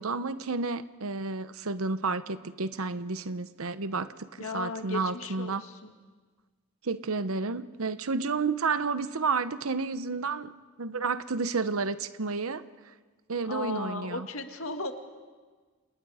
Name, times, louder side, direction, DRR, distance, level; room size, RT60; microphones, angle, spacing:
voice 1, 0.0-4.1 4.5-5.6 6.8-10.5 10.8-12.6 13.3-14.3, right 4 dB, 75° right, 13 dB, 0.9 m, -31 dB
voice 2, 4.4-5.8 13.4-14.9, left 3 dB, 75° left, 6 dB, 1.9 m, -36 dB
30.0 x 27.0 x 5.0 m, 1.4 s
head